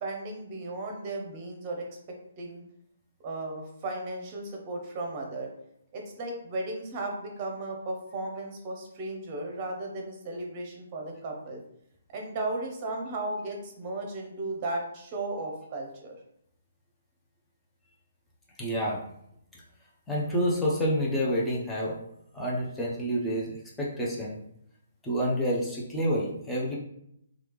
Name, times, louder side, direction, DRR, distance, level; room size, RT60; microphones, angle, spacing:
voice 1, 0.0-1.9 2.4-2.6 3.2-5.5 5.9-11.6 12.1-16.2, right 2 dB, 30° right, 1 dB, 0.9 m, -35 dB
voice 2, 18.6-19.0 20.1-21.9 22.3-24.4 25.0-26.8, equal, 5° left, -5 dB, 0.8 m, -28 dB
3.2 x 2.4 x 3.1 m, 0.74 s
figure-of-eight pair, 140°, 0 cm